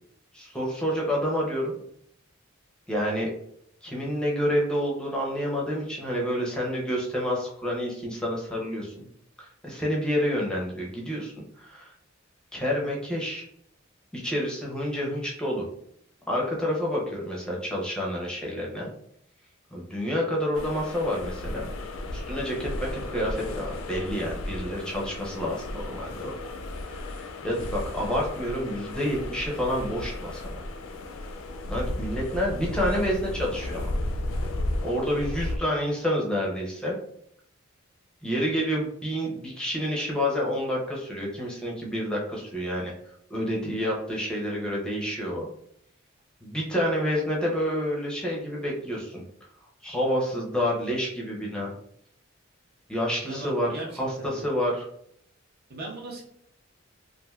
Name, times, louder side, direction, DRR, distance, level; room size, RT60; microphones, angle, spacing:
voice 1, 0.3-1.8 2.9-3.3 3.8-9.0 9.4-11.9 12.5-13.4 14.1-15.7 16.3-18.9 19.7-21.7 22.1-26.5 26.8-30.6 31.7-34.0 34.8-37.0 38.2-42.9 43.3-45.5 46.4-49.2 49.8-51.7 52.9-54.9, equal, 5° left, -3 dB, 0.5 m, -29 dB
sound 1, 20.5-35.6, left 1 dB, 90° left, 0.4 m, -34 dB
voice 2, 53.3-54.4 55.7-56.2, right 2 dB, 50° right, -2 dB, 0.8 m, -39 dB
3.3 x 2.5 x 2.2 m, 0.70 s
head